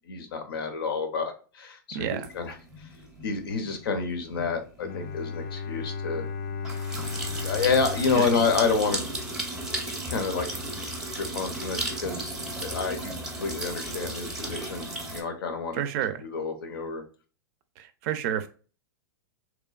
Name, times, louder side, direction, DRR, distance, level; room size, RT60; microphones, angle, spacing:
voice 1, 0.0-2.9 3.2-6.3 7.4-9.1 10.1-10.5 11.2-15.8 16.2-17.0, left 5 dB, 85° left, 0.7 m, -29 dB
voice 2, 1.9-2.3 8.1-8.5 15.7-16.2 17.8-18.5, right 10 dB, 45° right, 0.4 m, -30 dB
sound 1, 2.2-15.2, right 1 dB, 5° right, 0.6 m, -35 dB
Bowed string instrument, 4.8-9.7, left 5 dB, 40° left, 0.4 m, -35 dB
3.0 x 2.2 x 2.3 m
hypercardioid pair, 135°, 12 cm